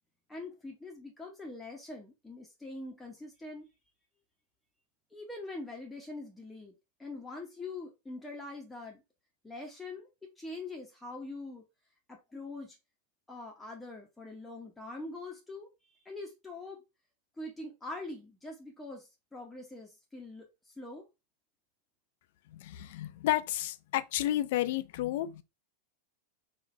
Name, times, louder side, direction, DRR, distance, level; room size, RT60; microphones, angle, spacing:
voice 1, 0.3-3.7 5.1-9.0 9.4-11.6 12.1-12.8 13.3-15.7 15.9-16.8 17.4-21.1, left 2 dB, 5° left, 0.8 m, -43 dB
voice 2, 22.5-25.4, left 14 dB, 50° left, 0.4 m, -31 dB
4.7 x 2.4 x 3.2 m
figure-of-eight pair, 90°, 0 cm